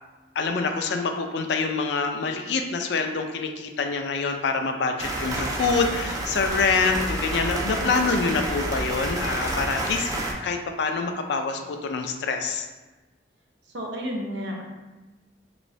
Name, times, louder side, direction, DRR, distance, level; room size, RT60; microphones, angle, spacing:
voice 1, 0.4-12.7, left 4 dB, 65° left, 5 dB, 0.4 m, -26 dB
sound 1, 5.0-10.3, right 1 dB, 20° right, 0.4 m, -29 dB
voice 2, 13.7-14.6, equal, 80° right, 1 dB, 0.6 m, -31 dB
3.1 x 3.0 x 2.6 m, 1.2 s
head